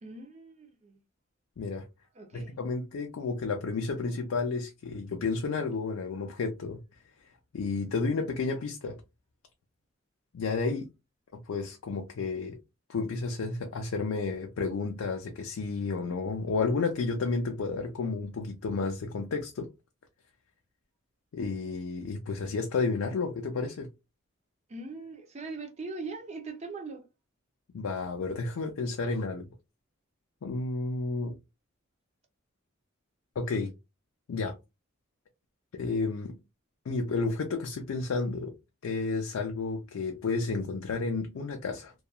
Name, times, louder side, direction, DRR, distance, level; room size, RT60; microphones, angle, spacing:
voice 1, 0.0-1.0 2.1-2.6 24.7-27.0, right 3 dB, 30° right, 0.4 m, -41 dB
voice 2, 2.3-6.8 7.5-9.0 10.3-10.9 11.3-12.6 12.9-19.7 21.3-23.9 27.7-29.5 30.4-31.4 33.4-33.7 34.3-34.6 35.7-36.4 36.9-38.5 38.8-41.9, left 4 dB, 90° left, 0.4 m, -31 dB
2.8 x 2.2 x 2.2 m
head